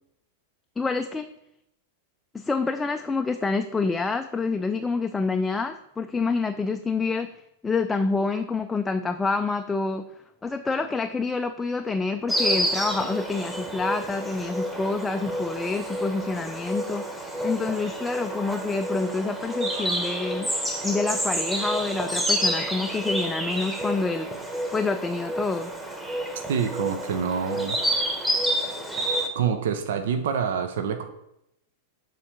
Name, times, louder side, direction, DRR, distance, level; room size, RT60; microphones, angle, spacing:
voice 1, 0.8-1.3 2.3-7.3 7.6-10.0 10.4-20.5 20.8-24.3 24.7-25.7, left 4 dB, 10° left, 7 dB, 0.4 m, -27 dB
Insect, 12.3-29.3, right 1 dB, 5° right, 1.2 m, -29 dB
voice 2, 26.5-28.1 29.3-31.0, right 7 dB, 60° right, 8 dB, 0.6 m, -27 dB
6.9 x 3.9 x 4.7 m, 0.82 s
figure-of-eight pair, 95°, 0 cm